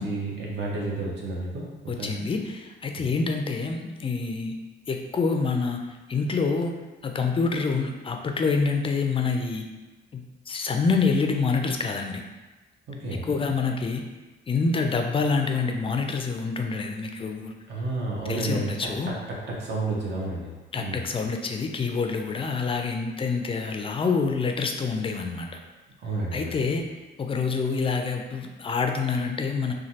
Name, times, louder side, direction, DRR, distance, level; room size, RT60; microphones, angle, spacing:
voice 1, 0.0-2.1 12.9-13.2 17.7-18.9 19.3-21.0 26.0-26.7, right 2 dB, 60° right, -4 dB, 0.9 m, -31 dB
voice 2, 1.9-4.5 4.9-6.7 7.0-9.7 10.1-12.2 13.2-14.0 14.5-17.5 18.3-19.1 20.7-25.6 26.3-26.8 27.2-29.7, left 4 dB, 25° left, 4 dB, 0.3 m, -27 dB
3.1 x 2.3 x 2.7 m, 1.2 s
cardioid pair, 90°, 20 cm